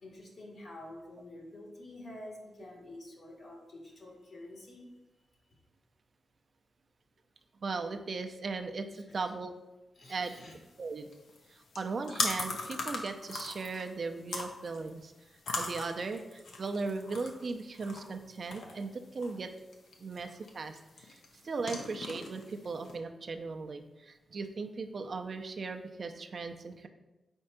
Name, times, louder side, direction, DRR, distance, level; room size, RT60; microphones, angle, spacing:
voice 1, 0.0-4.8 8.9-9.3 10.0-10.6 16.1-16.2, left 1 dB, 70° left, -1 dB, 1.9 m, -48 dB
voice 2, 7.6-9.5 10.1-10.3 10.8-11.1 11.5-15.1 15.6-19.5 20.0-21.1 21.4-26.9, right 4 dB, 60° right, 6 dB, 0.5 m, -37 dB
sound 1, 10.3-23.0, left 3 dB, 90° left, 0.8 m, -41 dB
4.4 x 4.4 x 5.1 m, 1.0 s
cardioid pair, 70°, 0 cm